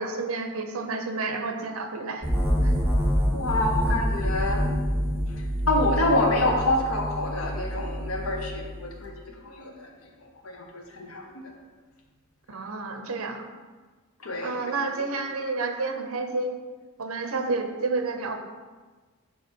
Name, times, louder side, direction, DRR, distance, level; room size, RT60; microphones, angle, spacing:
voice 1, 0.0-2.2 2.6-2.7 12.5-13.5 14.4-16.5 17.0-18.4, right 3 dB, 85° right, 6 dB, 0.7 m, -30 dB
sound 1, 2.2-9.0, equal, 10° right, 1.2 m, -27 dB
voice 2, 3.3-4.7 5.7-9.9 10.2-11.5 14.2-15.1, left 1 dB, 80° left, 0 dB, 1.1 m, -27 dB
5.8 x 4.8 x 4.5 m, 1.4 s
head